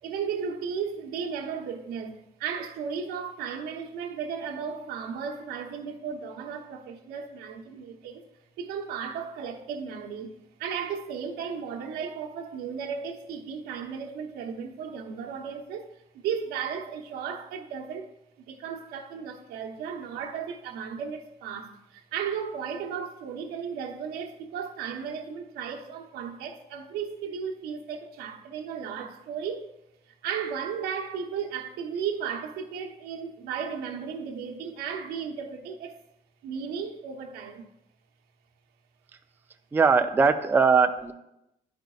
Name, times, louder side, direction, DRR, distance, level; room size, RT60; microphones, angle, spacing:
voice 1, 0.0-8.3 8.6-18.1 18.4-29.7 30.0-36.0 36.4-37.7, right 7 dB, 85° right, 0.9 m, -35 dB
voice 2, 39.7-41.1, right 5 dB, 15° right, 0.4 m, -20 dB
10.5 x 5.1 x 2.4 m
cardioid pair, 120°, 16 cm